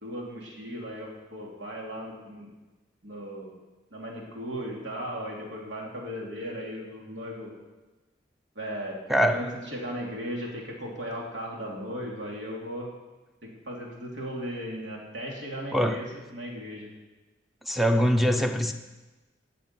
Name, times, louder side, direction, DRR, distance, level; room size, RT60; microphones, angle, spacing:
voice 1, 0.0-2.5 3.0-3.5 3.9-7.5 8.5-9.0 9.3-12.9 13.4-16.9, equal, 90° right, -2 dB, 2.8 m, -36 dB
voice 2, 9.1-9.5 15.7-16.0 17.7-18.7, equal, ahead, 6 dB, 0.6 m, -23 dB
12.5 x 7.5 x 5.7 m, 1.2 s
head